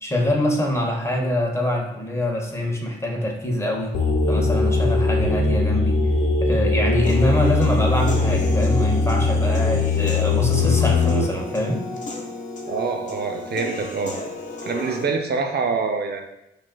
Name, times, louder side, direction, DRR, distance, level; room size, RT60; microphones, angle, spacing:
voice 1, 0.0-3.9 4.3-6.0 6.4-11.8, left 1 dB, 15° left, 0 dB, 1.2 m, -24 dB
sound 1, 3.9-11.2, left 3 dB, 70° left, 0.8 m, -20 dB
Human voice / Piano, 7.0-15.0, left 1 dB, 35° left, 1.0 m, -33 dB
voice 2, 12.7-14.1 14.6-16.2, right 4 dB, 50° right, 3 dB, 0.6 m, -25 dB
5.9 x 2.6 x 2.3 m, 0.87 s
hypercardioid pair, 40°, 21 cm